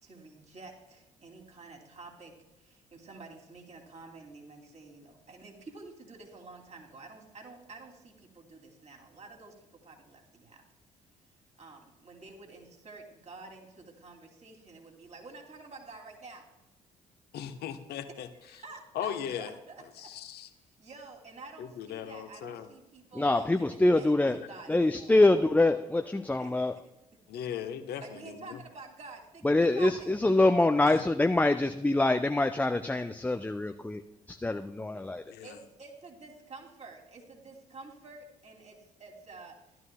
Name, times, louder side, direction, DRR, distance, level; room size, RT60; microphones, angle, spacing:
voice 1, 0.0-10.6 11.6-16.4 18.4-20.1 20.6-25.2 26.4-26.5 28.0-30.1 35.4-39.9, right 3 dB, 35° right, 1 dB, 2.8 m, -49 dB
voice 2, 17.3-18.3 18.9-19.5 20.0-20.5 21.6-22.7 27.3-28.6 35.3-35.5, left 9 dB, 55° left, 8 dB, 1.0 m, -38 dB
voice 3, 23.2-24.4 24.7-26.8 29.4-34.0 34.3-35.3, left 2 dB, 10° left, 7 dB, 0.5 m, -25 dB
15.5 x 12.5 x 2.2 m, 0.93 s
figure-of-eight pair, 45°, 19 cm